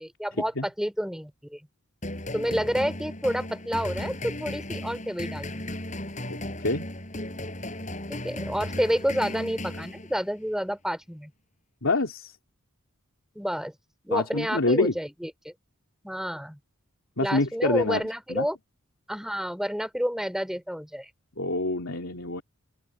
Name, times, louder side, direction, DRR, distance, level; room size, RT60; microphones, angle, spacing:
voice 1, 0.0-1.6 2.3-5.6 8.1-11.3 13.3-13.7 14.0-15.5 16.0-16.6 17.2-18.6 19.1-21.1, equal, ahead, 4.1 m, -29 dB
sound 1, 2.0-10.4, left 1 dB, 35° left, 7.7 m, -35 dB
voice 2, 6.2-6.9 11.8-12.4 14.1-14.9 17.2-18.5 21.4-22.4, left 2 dB, 65° left, 3.0 m, -27 dB
open air
head